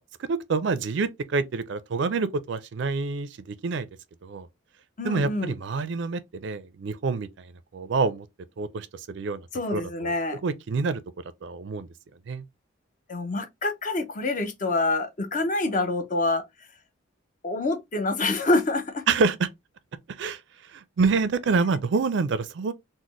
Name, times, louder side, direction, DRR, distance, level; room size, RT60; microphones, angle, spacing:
voice 1, 0.2-3.9 4.2-4.5 5.0-8.3 8.6-9.5 9.7-11.0 11.4-11.9 12.3-12.4 19.1-19.5 20.2-20.4 20.7-22.7, right 4 dB, 60° right, 0.4 m, -27 dB
voice 2, 5.0-5.5 9.5-10.4 13.1-16.4 17.4-19.0, left 2 dB, 40° left, 0.6 m, -26 dB
4.0 x 2.0 x 3.0 m
head